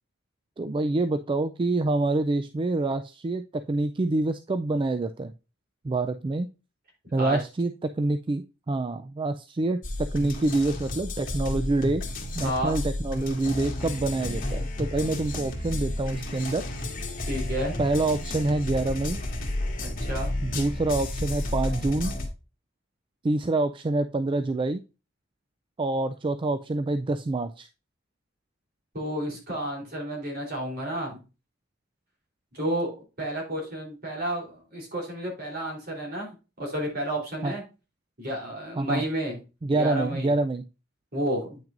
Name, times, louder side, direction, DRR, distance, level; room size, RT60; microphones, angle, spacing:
voice 1, 0.6-5.3 5.8-6.5 7.1-9.8 10.1-12.0 12.4-16.6 17.8-19.2 20.4-22.1 23.2-24.8 25.8-27.7 37.4-37.5 38.8-39.0 39.6-40.6, right 2 dB, 25° right, 10 dB, 0.3 m, -26 dB
sound 1, 9.8-22.3, left 1 dB, 45° left, 1.8 m, -32 dB
voice 2, 12.4-12.8 17.3-17.8 19.8-20.3 28.9-31.2 32.5-36.3 36.6-37.6 38.2-39.4 39.8-40.3 41.1-41.6, right 1 dB, 55° right, -1 dB, 3.5 m, -31 dB
8.9 x 5.9 x 2.5 m, 0.30 s
head